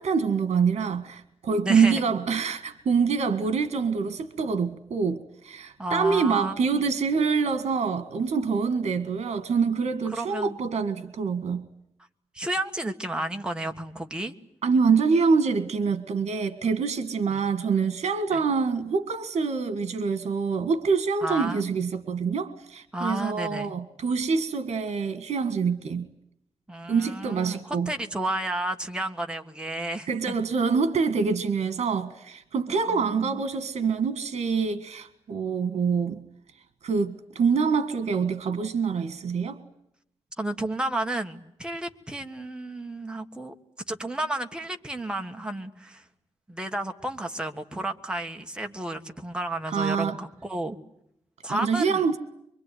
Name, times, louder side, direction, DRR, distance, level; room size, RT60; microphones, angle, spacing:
voice 1, 0.0-11.6 14.6-26.1 26.9-27.9 30.1-36.2 36.8-39.6 49.7-50.2 51.5-52.2, right 5 dB, 75° right, 1.9 m, -25 dB
voice 2, 1.6-2.0 5.8-6.8 10.1-10.6 12.3-14.3 17.3-17.4 18.3-18.4 21.2-21.7 22.9-23.7 26.7-30.3 32.9-33.4 40.4-43.5 43.9-46.0 46.5-50.8 51.4-52.0, right 1 dB, 10° right, 1.6 m, -32 dB
25.0 x 24.0 x 9.4 m
wide cardioid pair, 170°, 11 cm